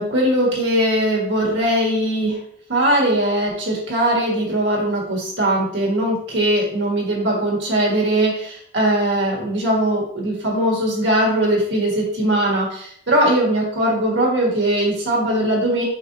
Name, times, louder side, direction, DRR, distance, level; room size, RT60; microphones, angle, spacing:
voice 1, 0.0-2.4 2.7-15.8, right 1 dB, 65° right, -3 dB, 1.5 m, -20 dB
4.8 x 3.9 x 2.6 m, 0.64 s
head